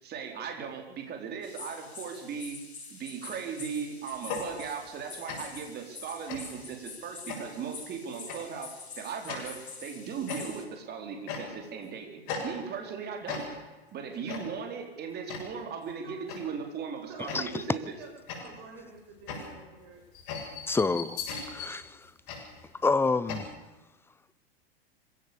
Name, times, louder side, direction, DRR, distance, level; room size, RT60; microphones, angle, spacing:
voice 1, 0.0-2.6 2.9-13.5 13.9-17.9, right 6 dB, 30° right, 4.5 m, -38 dB
sound 1, 1.4-10.6, left 4 dB, 90° left, 5.9 m, -46 dB
sound 2, 4.2-5.0 5.3-5.7 6.3-6.7 7.3-7.7 8.3-8.6 9.3-9.7 10.3-10.8 11.3-11.8 12.3-12.9 13.3-13.8 14.3-14.7 15.3-15.7 16.3-16.6 17.3-17.8 18.3-23.4, left 4 dB, 50° left, 7.5 m, -39 dB
voice 2, 17.1-20.0, right 2 dB, 60° right, 8.0 m, -47 dB
voice 3, 20.7-21.2 21.5-22.1 22.8-23.5, left 4 dB, 5° left, 0.8 m, -27 dB
26.0 x 16.5 x 7.2 m
hypercardioid pair, 110°, 31 cm